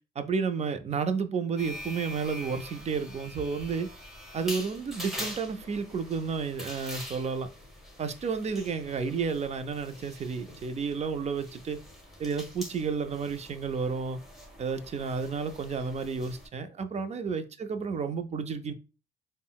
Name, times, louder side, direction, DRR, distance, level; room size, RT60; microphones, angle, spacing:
voice 1, 0.2-3.9 4.3-7.5 8.0-11.8 12.2-14.2 14.6-18.7, right 5 dB, 35° right, 0.4 m, -31 dB
sound 1, 1.6-16.5, equal, ahead, 0.9 m, -44 dB
3.6 x 2.0 x 2.3 m
cardioid pair, 90°, 20 cm